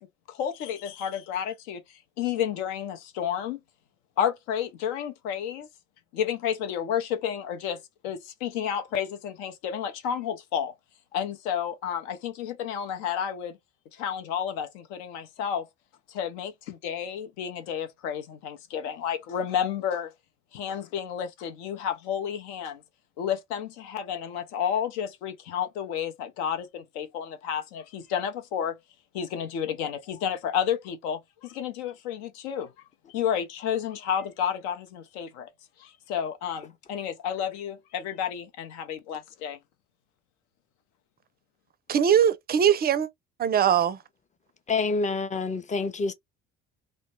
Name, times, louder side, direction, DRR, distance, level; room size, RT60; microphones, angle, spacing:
voice 1, 0.3-3.6 4.2-5.7 6.1-10.7 11.1-13.6 13.9-15.7 16.1-20.1 20.5-22.8 23.2-28.8 29.1-32.7 33.1-35.5 35.8-39.6, left 8 dB, 75° left, 0.7 m, -31 dB
voice 2, 41.9-43.1 43.4-44.0, right 9 dB, 30° right, 0.4 m, -21 dB
voice 3, 44.7-46.1, left 4 dB, 20° left, 0.5 m, -27 dB
2.1 x 2.0 x 2.9 m
hypercardioid pair, 60°, 34 cm